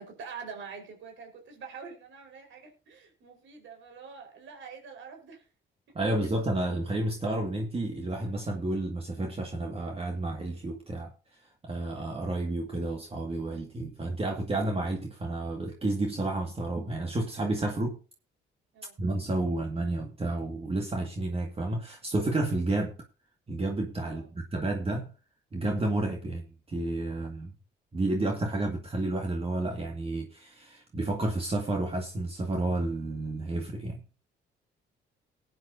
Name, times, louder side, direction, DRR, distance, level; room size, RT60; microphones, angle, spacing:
voice 1, 0.0-5.4 5.9-6.0 18.7-19.0 24.0-24.3 27.1-27.2, right 5 dB, 75° right, 4.4 m, -45 dB
voice 2, 5.9-18.0 19.0-22.9 23.5-25.1 25.5-27.5 27.9-34.0, right 2 dB, 30° right, 2.0 m, -31 dB
19.5 x 9.3 x 2.7 m
cardioid pair, 90°, 20 cm